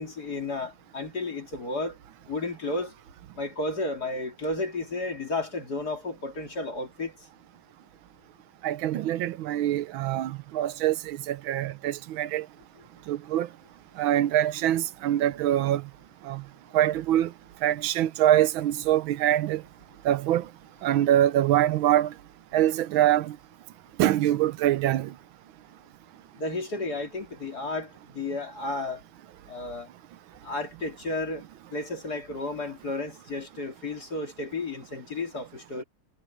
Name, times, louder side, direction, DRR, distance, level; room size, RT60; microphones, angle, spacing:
voice 1, 0.0-2.0 2.3-2.9 3.3-7.2 26.4-29.0 29.5-29.9 30.4-31.4 31.7-35.8, left 2 dB, 50° left, 3.2 m, -32 dB
voice 2, 8.6-12.5 13.1-13.5 14.0-15.8 16.2-16.4 16.7-17.3 17.6-19.6 20.0-20.5 20.8-22.1 22.5-23.4 24.0-25.1, right 12 dB, 80° right, 1.5 m, -24 dB
omnidirectional pair, 2.2 m